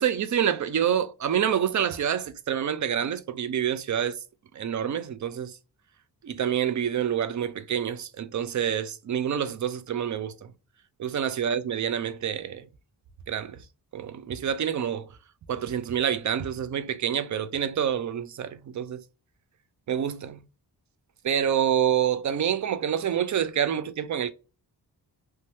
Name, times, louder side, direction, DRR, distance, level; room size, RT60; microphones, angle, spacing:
voice 1, 0.0-4.2 4.6-5.5 6.2-10.5 11.0-12.6 13.3-13.6 13.9-15.1 15.5-19.0 19.9-20.4 21.2-24.3, right 9 dB, 45° right, 0.4 m, -27 dB
2.7 x 2.2 x 3.1 m
cardioid pair, 85°, 42 cm